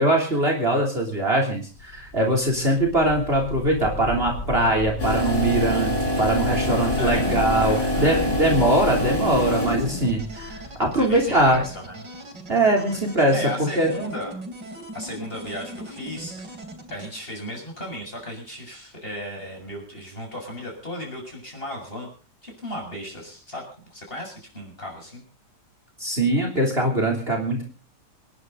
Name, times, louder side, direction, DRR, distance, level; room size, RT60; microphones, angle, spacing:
voice 1, 0.0-11.6 12.5-13.4 13.7-13.9 26.0-27.6, right 1 dB, 35° right, 2 dB, 3.5 m, -22 dB
sound 1, 1.7-11.7, left 3 dB, 80° left, 5.1 m, -34 dB
sound 2, 5.0-10.1, left 1 dB, 60° left, 6.5 m, -25 dB
sound 3, 6.5-17.1, right 1 dB, 80° right, 3.8 m, -39 dB
voice 2, 7.0-7.3 7.6-8.3 10.9-12.1 12.8-13.0 13.3-14.3 14.9-16.6 16.9-22.1 22.4-23.6 23.9-25.2, equal, 30° left, 0 dB, 7.3 m, -35 dB
27.0 x 11.0 x 4.0 m, 0.39 s
omnidirectional pair, 1.9 m